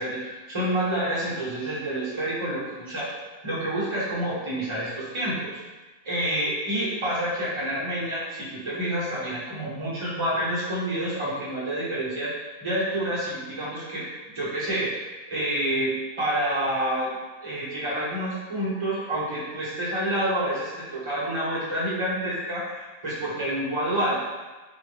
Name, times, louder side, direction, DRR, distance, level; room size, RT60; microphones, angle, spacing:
voice 1, 0.0-3.1 3.4-5.6 6.0-17.1 17.4-24.2, right 1 dB, 20° right, -8 dB, 1.2 m, -28 dB
4.5 x 2.6 x 3.3 m, 1.2 s
omnidirectional pair, 1.6 m